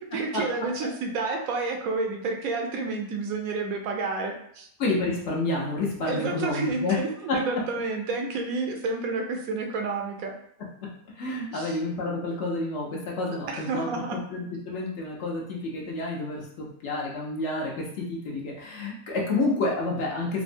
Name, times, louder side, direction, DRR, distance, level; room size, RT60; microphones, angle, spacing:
voice 1, 0.1-4.7 6.1-10.3 11.5-11.8 13.5-14.2, right 3 dB, 80° right, 2 dB, 1.0 m, -30 dB
voice 2, 4.8-7.0 11.1-20.4, left 2 dB, 60° left, -3 dB, 0.9 m, -29 dB
3.4 x 2.0 x 2.5 m, 0.68 s
omnidirectional pair, 1.5 m